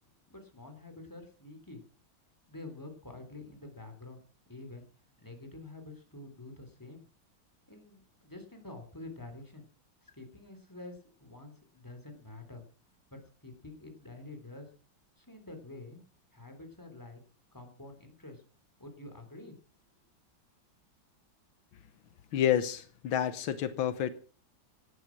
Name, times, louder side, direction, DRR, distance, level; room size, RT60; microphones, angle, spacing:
voice 1, 0.3-1.8 2.5-4.2 4.5-4.9 5.2-7.0 7.7-9.7 10.0-12.6 13.1-14.7 15.2-16.0 16.3-17.2 17.5-18.4 18.8-19.5, left 2 dB, 10° left, 3.7 m, -48 dB
voice 2, 22.3-24.1, left 10 dB, 85° left, 1.8 m, -29 dB
17.0 x 11.5 x 6.1 m
omnidirectional pair, 2.1 m